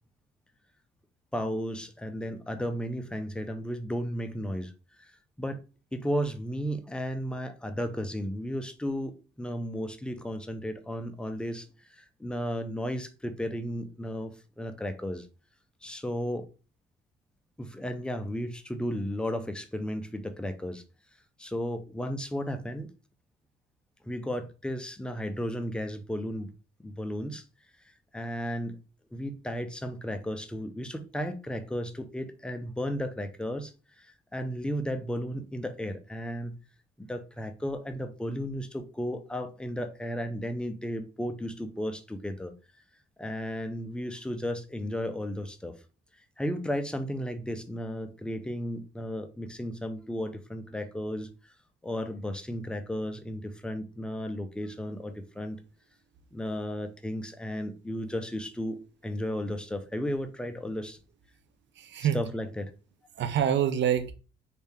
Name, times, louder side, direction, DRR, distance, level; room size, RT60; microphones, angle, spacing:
voice 1, 1.3-4.7 5.0-5.1 5.4-5.6 5.9-15.3 15.8-16.5 17.6-20.8 21.4-22.9 24.0-26.5 26.8-27.4 28.1-28.8 29.1-33.7 34.0-36.6 37.0-42.5 43.2-45.8 46.4-51.3 51.8-55.6 56.3-61.0 62.1-62.7, equal, 5° left, 0.5 m, -34 dB
voice 2, 61.8-62.3 63.2-64.1, right 9 dB, 65° right, 0.6 m, -26 dB
3.4 x 2.7 x 3.3 m
cardioid pair, 90°, 20 cm